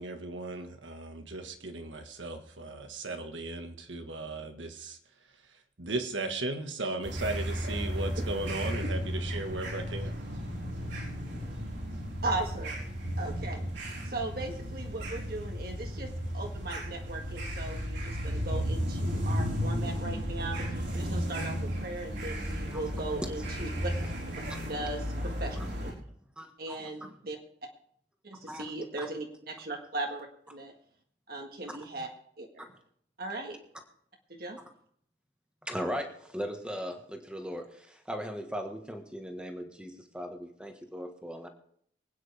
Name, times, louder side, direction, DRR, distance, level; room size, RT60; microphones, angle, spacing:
voice 1, 0.0-5.0 5.8-10.1, right 2 dB, 90° right, 6 dB, 1.6 m, -36 dB
sound 1, 7.0-25.9, equal, 70° right, 4.2 m, -34 dB
voice 2, 12.2-12.8 13.2-13.6 13.9-23.9 24.3-24.4 24.7-26.0 26.6-27.4 28.2-30.7 31.3-32.1 32.4-32.7 33.2-33.6 34.3-34.6, right 2 dB, 55° right, 2 dB, 1.7 m, -38 dB
voice 3, 26.4-26.9 28.5-28.6 29.0-29.1 35.6-41.5, equal, 5° right, 4 dB, 1.5 m, -38 dB
24.0 x 9.4 x 3.5 m, 0.65 s
head